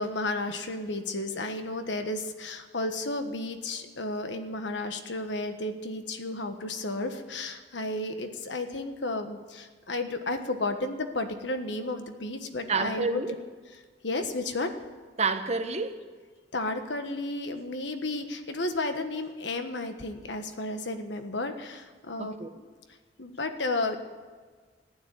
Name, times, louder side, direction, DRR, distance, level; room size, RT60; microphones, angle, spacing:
voice 1, 0.0-13.2 14.0-14.7 16.5-22.7 23.2-24.0, left 2 dB, 80° left, 7 dB, 1.4 m, -32 dB
voice 2, 12.7-13.4 15.2-16.0 22.2-22.5, right 4 dB, 40° right, 8 dB, 1.0 m, -29 dB
14.5 x 9.5 x 9.4 m, 1.5 s
head